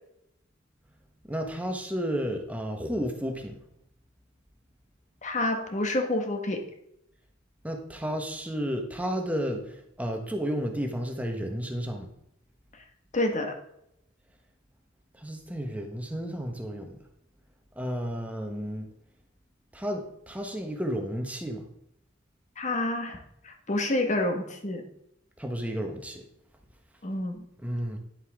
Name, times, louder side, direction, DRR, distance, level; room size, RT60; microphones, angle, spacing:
voice 1, 1.3-3.5 7.6-9.6 10.0-12.1 15.2-17.0 17.8-18.9 19.7-21.6 25.4-26.2 27.6-28.0, equal, 5° right, 3 dB, 1.2 m, -32 dB
voice 2, 5.2-6.6 13.1-13.6 22.6-23.2 23.4-24.8 27.0-27.4, left 1 dB, 40° left, 4 dB, 1.6 m, -28 dB
10.5 x 8.2 x 3.7 m, 0.78 s
head